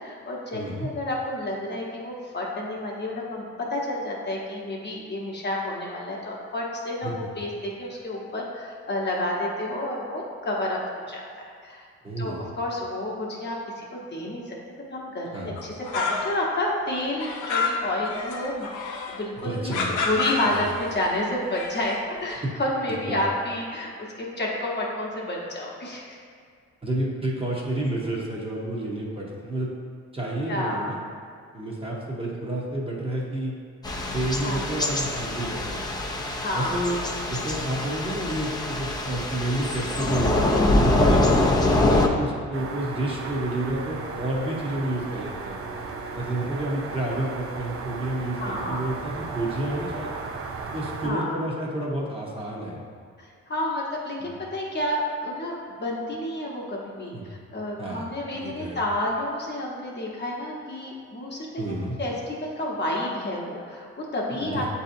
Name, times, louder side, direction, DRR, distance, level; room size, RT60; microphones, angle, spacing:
voice 1, 0.0-11.9 12.2-14.6 14.9-18.7 19.1-19.7 20.0-23.9 24.2-26.2 30.4-30.8 34.4-34.8 36.4-36.9 48.4-48.8 51.0-51.4 53.2-61.6 62.0-64.7, left 1 dB, 35° left, -3 dB, 0.9 m, -30 dB
voice 2, 0.5-0.9 7.0-7.1 12.0-12.4 15.3-15.5 19.4-20.0 20.5-20.6 22.4-22.5 23.1-23.2 26.8-29.7 30.1-31.0 31.5-33.5 34.1-35.9 36.5-37.0 37.3-40.3 40.8-45.6 46.1-50.2 50.7-52.9 54.2-54.3 57.1-57.2 57.8-58.0 58.3-58.8 61.6-62.0 64.4-64.6, right 1 dB, 20° right, -4 dB, 0.8 m, -30 dB
sound 1, 15.6-16.6 16.9-19.2 19.7-21.0 21.4-22.1, left 4 dB, 80° left, 0.6 m, -29 dB
Thunder / Rain, 33.8-42.1, left 1 dB, 15° left, 0.5 m, -24 dB
sound 2, 42.5-51.1, right 4 dB, 50° right, 0.5 m, -35 dB
7.4 x 2.8 x 2.6 m, 2.2 s
cardioid pair, 90°, 30 cm